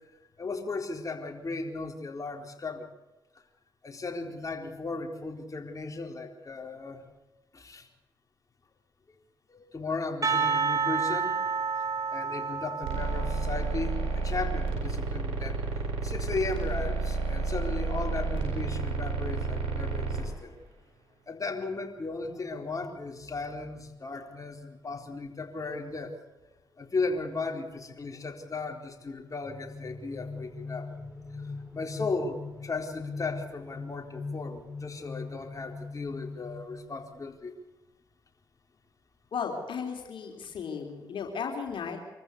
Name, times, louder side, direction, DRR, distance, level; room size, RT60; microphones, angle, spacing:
voice 1, 0.4-2.9 3.8-7.0 7.5-7.9 9.5-11.4 11.8-15.6 16.0-20.6 21.3-26.1 26.8-30.9 31.7-37.5, left 3 dB, 40° left, 3 dB, 4.2 m, -36 dB
Percussion, 10.2-14.1, right 5 dB, 40° right, 4.5 m, -30 dB
sound 1, 12.8-20.2, right 4 dB, 85° right, 7.1 m, -31 dB
sound 2, 29.4-37.3, left 3 dB, 15° right, 4.7 m, -41 dB
voice 2, 39.3-42.0, left 6 dB, 65° left, 2 dB, 3.9 m, -35 dB
25.0 x 14.5 x 8.3 m, 1.0 s
supercardioid pair, 50°, 9 cm